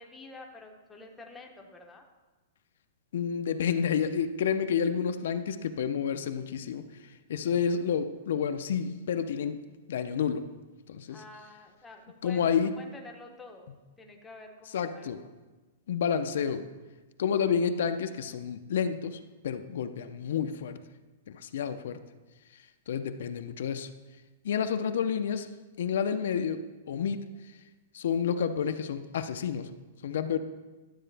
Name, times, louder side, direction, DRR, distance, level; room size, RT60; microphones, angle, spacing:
voice 1, 0.0-2.0 11.1-13.7 14.0-15.3, left 3 dB, 5° left, 1 dB, 0.7 m, -49 dB
voice 2, 3.1-6.8 7.3-9.6 9.9-10.5 10.9-11.2 12.2-12.7 14.7-15.2 15.9-16.7 17.2-20.8 21.3-22.0 22.9-23.9 24.4-25.5 25.8-27.2 27.9-29.7 30.0-30.4, left 7 dB, 65° left, 9 dB, 0.5 m, -29 dB
12.0 x 7.6 x 3.3 m, 1.2 s
supercardioid pair, 170°, 0 cm